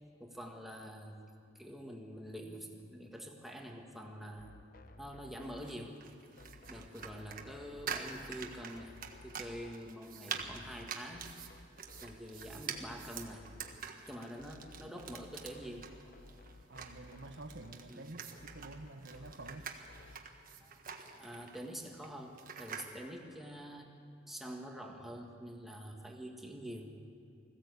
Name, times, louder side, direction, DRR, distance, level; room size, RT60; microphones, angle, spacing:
voice 1, 0.2-1.2 1.6-4.5 5.0-6.0 6.7-9.0 9.2-11.3 12.0-13.4 14.1-16.3 17.9-18.1 20.6-20.8 21.1-23.9 24.3-26.9, equal, ahead, 1 dB, 1.8 m, -46 dB
sound 1, 4.4-20.3, left 2 dB, 50° left, 0.7 m, -57 dB
sound 2, 5.4-22.9, right 6 dB, 50° right, 1.4 m, -46 dB
voice 2, 14.4-14.9 16.7-19.7, right 2 dB, 65° right, 9 dB, 1.1 m, -49 dB
20.5 x 15.5 x 8.2 m, 2.5 s
head